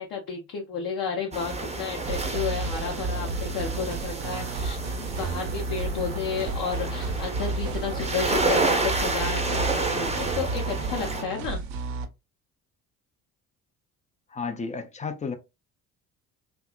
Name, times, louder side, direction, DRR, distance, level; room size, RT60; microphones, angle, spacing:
voice 1, 0.0-11.6, left 6 dB, 50° left, 0.8 m, -32 dB
sound 1, 1.3-11.2, right 3 dB, 15° right, 0.7 m, -30 dB
sound 2, 2.0-12.0, right 4 dB, 55° right, 0.6 m, -32 dB
voice 2, 14.3-15.3, left 5 dB, 15° left, 0.4 m, -32 dB
2.7 x 2.3 x 2.3 m
figure-of-eight pair, 50°, 49 cm